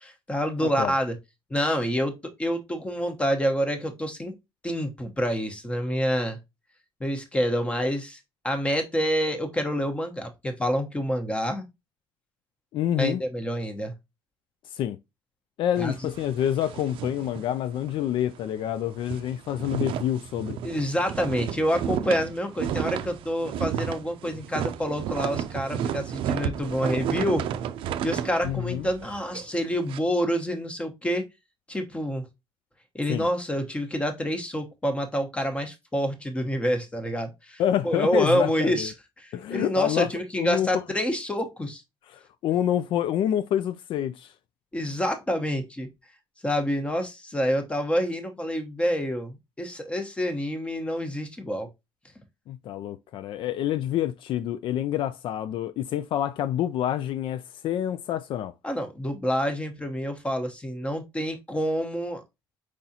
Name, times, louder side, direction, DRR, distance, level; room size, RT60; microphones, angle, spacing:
voice 1, 0.0-1.1 1.5-4.3 4.6-6.4 7.0-8.2 8.4-11.6 13.0-13.9 15.8-15.9 20.6-27.4 28.0-31.2 31.7-32.2 32.9-41.8 44.7-45.9 46.4-51.7 58.6-62.2, equal, 15° left, 1.0 m, -27 dB
voice 2, 0.6-0.9 12.7-13.2 14.7-15.0 15.6-20.6 28.4-28.9 33.1-33.3 37.6-38.9 39.3-40.1 40.4-40.8 42.1-44.3 52.5-58.5, left 11 dB, 65° left, 0.4 m, -27 dB
sound 1, 15.7-18.0 18.3-18.5 18.8-30.0, right 9 dB, 75° right, 0.5 m, -32 dB
4.8 x 4.0 x 2.8 m
cardioid pair, 140°, 9 cm